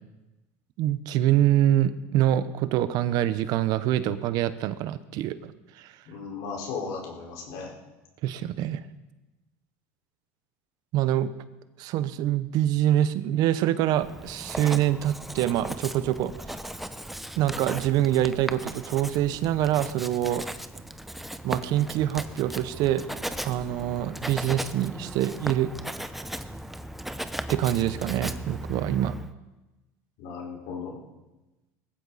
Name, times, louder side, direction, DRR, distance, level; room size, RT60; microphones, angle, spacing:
voice 1, 0.8-5.5 5.8-5.9 8.2-8.8 10.9-11.3 11.8-16.3 17.4-20.5 21.4-23.0 23.4-25.7 27.5-29.1, right 12 dB, 60° right, 14 dB, 0.9 m, -25 dB
voice 2, 6.1-7.7 30.2-31.0, left 5 dB, 70° left, -1 dB, 4.7 m, -36 dB
Writing, 13.9-29.3, right 1 dB, ahead, 0.7 m, -37 dB
20.0 x 15.0 x 4.2 m, 1.1 s
supercardioid pair, 115°, 8 cm